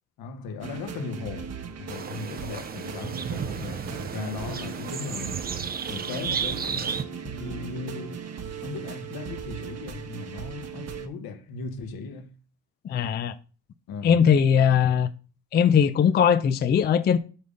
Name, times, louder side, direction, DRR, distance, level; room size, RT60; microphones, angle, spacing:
voice 1, 0.2-5.4 5.9-8.2 8.6-12.3 13.9-14.2, left 4 dB, 70° left, 1.3 m, -37 dB
sound 1, 0.6-11.1, right 7 dB, 40° right, 1.1 m, -38 dB
sound 2, 1.9-7.0, right 7 dB, 25° right, 0.5 m, -33 dB
voice 2, 12.8-13.3 14.0-15.1 15.5-17.2, left 7 dB, 30° left, 0.4 m, -20 dB
7.8 x 3.7 x 5.2 m
cardioid pair, 125°, 38 cm